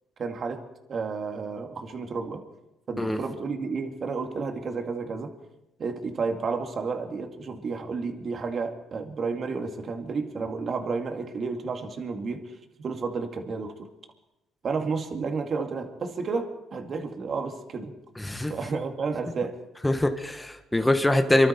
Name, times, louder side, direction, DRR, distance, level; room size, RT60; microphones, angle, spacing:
voice 1, 0.2-2.4 2.9-5.3 5.8-13.9 14.6-17.9 18.5-19.6, right 4 dB, 50° right, 4 dB, 2.1 m, -31 dB
voice 2, 18.2-18.5 19.8-21.5, left 1 dB, 10° left, 6 dB, 1.3 m, -23 dB
24.0 x 12.5 x 4.4 m, 0.94 s
cardioid pair, 85°, 0 cm